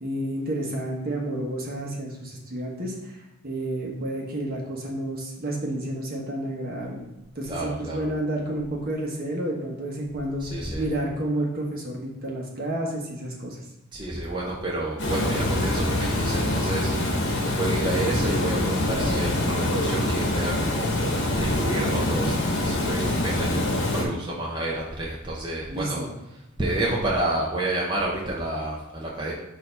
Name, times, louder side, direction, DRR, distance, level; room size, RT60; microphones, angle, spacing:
voice 1, 0.0-7.1 7.3-10.5 10.8-13.6 25.7-26.1, right 1 dB, 45° right, -1 dB, 1.1 m, -30 dB
voice 2, 7.5-8.1 10.4-10.8 13.9-26.0 26.6-29.3, right 1 dB, 20° right, -4 dB, 0.7 m, -30 dB
Water, 15.0-24.0, left 1 dB, 55° left, 1.1 m, -25 dB
6.5 x 2.8 x 5.2 m, 0.98 s
head